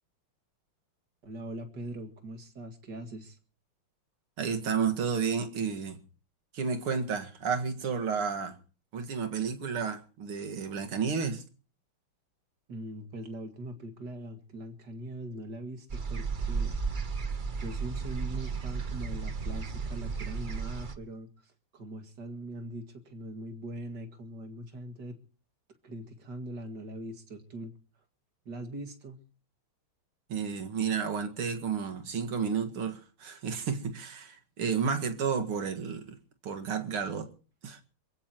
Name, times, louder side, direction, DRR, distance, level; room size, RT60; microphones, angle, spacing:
voice 1, 1.2-3.4 12.7-16.9 17.6-25.2 25.8-27.7 28.5-29.2, right 1 dB, 50° right, 2.7 m, -41 dB
voice 2, 4.4-6.0 6.5-8.6 8.9-11.4 30.3-36.2 36.4-37.3 37.6-37.8, right 6 dB, 80° right, 2.7 m, -31 dB
sound 1, 15.9-20.9, right 5 dB, 35° right, 0.8 m, -34 dB
27.0 x 16.0 x 3.0 m
omnidirectional pair, 2.4 m